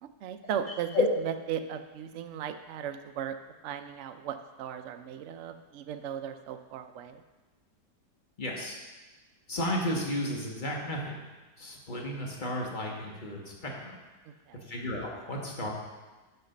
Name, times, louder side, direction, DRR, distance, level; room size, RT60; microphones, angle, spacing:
voice 1, 0.0-1.1 1.5-3.4 3.6-7.2 14.5-14.7, right 8 dB, 70° right, 7 dB, 0.7 m, -37 dB
voice 2, 8.4-8.8 9.5-11.2 11.6-14.0 14.5-15.7, left 2 dB, 30° left, -1 dB, 1.5 m, -33 dB
8.0 x 5.5 x 6.5 m, 1.2 s
omnidirectional pair, 1.8 m